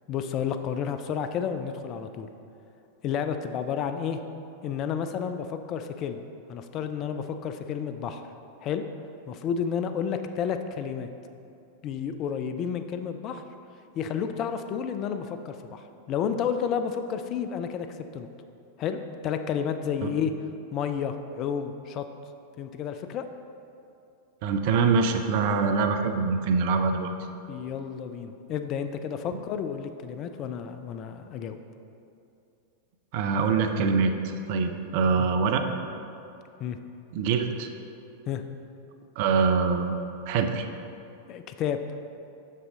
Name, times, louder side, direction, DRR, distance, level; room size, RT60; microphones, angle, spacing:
voice 1, 0.1-2.3 3.0-4.2 4.6-6.2 6.5-8.2 8.6-8.8 9.3-11.1 11.8-13.4 14.0-17.9 18.1-18.3 18.8-20.3 20.7-22.1 22.6-23.2 27.5-31.6 35.2-35.3 36.6-36.8 38.3-38.4 41.3-41.8, left 7 dB, 35° left, 8 dB, 0.4 m, -31 dB
voice 2, 24.4-27.1 33.1-35.6 37.1-37.7 39.2-40.0 40.3-40.7, right 5 dB, 50° right, 6 dB, 0.6 m, -24 dB
7.2 x 6.5 x 3.8 m, 2.7 s
figure-of-eight pair, 90°, 0 cm